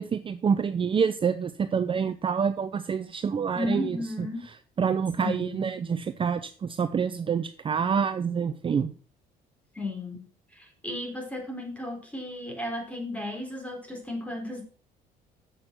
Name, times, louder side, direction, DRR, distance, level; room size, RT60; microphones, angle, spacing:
voice 1, 0.0-4.3 4.8-8.9, right 6 dB, 30° right, 10 dB, 0.6 m, -27 dB
voice 2, 3.6-4.4 5.2-5.6 9.7-10.3 10.5-14.6, left 1 dB, 10° left, 2 dB, 3.7 m, -34 dB
8.0 x 6.7 x 5.8 m, 0.39 s
cardioid pair, 110°, 17 cm